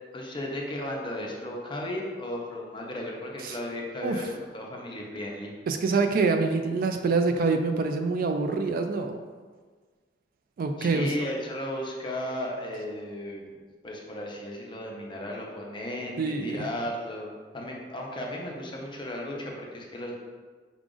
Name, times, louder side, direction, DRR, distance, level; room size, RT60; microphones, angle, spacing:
voice 1, 0.1-5.5 10.8-13.5 13.8-20.2, left 1 dB, 25° left, -1 dB, 0.6 m, -35 dB
voice 2, 5.7-9.2 10.6-11.1 16.2-16.7, right 4 dB, 50° right, 6 dB, 0.3 m, -25 dB
4.8 x 2.4 x 3.7 m, 1.5 s
head